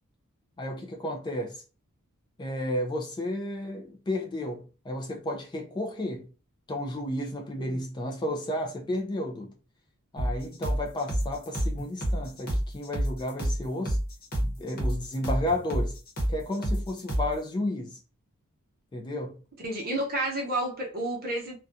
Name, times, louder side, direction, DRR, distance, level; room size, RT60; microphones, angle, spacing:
voice 1, 0.6-1.6 2.4-6.3 6.7-9.5 10.1-14.0 14.4-16.0 16.3-18.0 18.9-19.4, left 1 dB, 20° left, 0.3 m, -32 dB
sound 1, 10.2-17.4, equal, 45° left, 0.9 m, -29 dB
voice 2, 19.6-21.5, right 1 dB, 45° right, 0.8 m, -30 dB
2.4 x 2.2 x 2.6 m
head